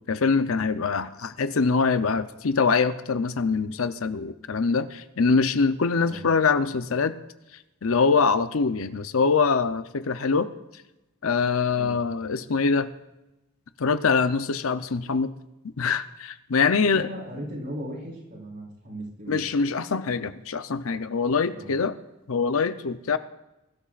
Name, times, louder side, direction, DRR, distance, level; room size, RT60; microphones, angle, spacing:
voice 1, 0.1-7.2 7.8-10.5 11.2-12.9 13.8-15.3 15.8-17.1 19.3-22.0 22.3-23.2, left 5 dB, 70° left, 12 dB, 0.7 m, -24 dB
voice 2, 16.9-19.4 21.5-21.7, right 1 dB, 50° right, -3 dB, 4.2 m, -37 dB
22.0 x 12.5 x 2.5 m, 0.96 s
head